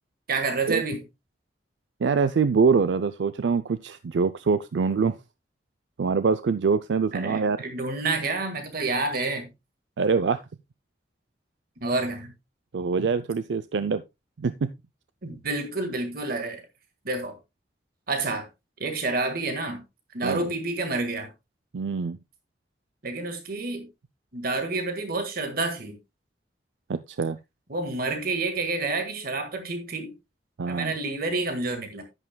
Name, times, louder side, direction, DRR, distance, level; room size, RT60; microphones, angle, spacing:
voice 1, 0.3-1.0 7.1-9.5 11.8-12.3 15.2-16.6 17.0-17.4 18.1-18.5 18.8-19.8 20.1-21.3 23.0-23.9 24.3-26.0 27.7-30.1 30.7-32.0, right 3 dB, 60° right, 1.7 m, -29 dB
voice 2, 2.0-5.2 6.0-7.6 10.0-10.4 12.7-14.0 14.4-14.7 20.2-20.4 21.7-22.2 26.9-27.4 30.6-30.9, right 5 dB, 85° right, 0.5 m, -24 dB
10.5 x 9.9 x 2.2 m
head